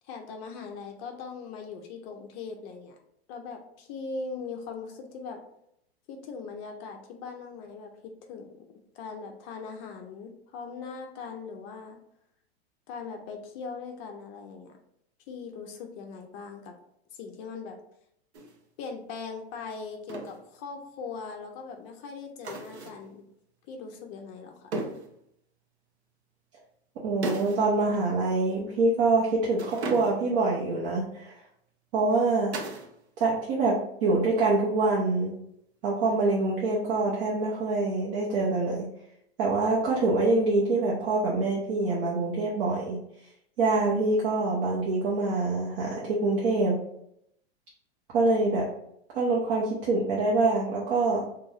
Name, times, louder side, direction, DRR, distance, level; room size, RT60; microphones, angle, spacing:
voice 1, 0.1-3.0 3.3-5.4 6.1-7.9 8.3-12.0 12.9-14.7 15.3-16.7 17.2-17.8 18.8-23.2 23.7-24.7, left 4 dB, 35° left, 3 dB, 0.4 m, -40 dB
sound 1, 18.3-18.6 20.1-20.4 22.4-23.1 24.7-25.1 27.2-27.7 27.9-28.1 29.5-30.4 32.5-33.0 33.2-33.8 36.1-36.6, right 2 dB, 85° right, 0.7 m, -36 dB
voice 2, 27.0-31.3 31.9-32.6 33.2-35.3 35.8-38.9 39.4-43.0 43.6-46.8 48.1-48.7 49.1-51.2, right 3 dB, 55° right, -5 dB, 0.8 m, -25 dB
2.5 x 2.3 x 3.1 m, 0.75 s
hypercardioid pair, 120°, 32 cm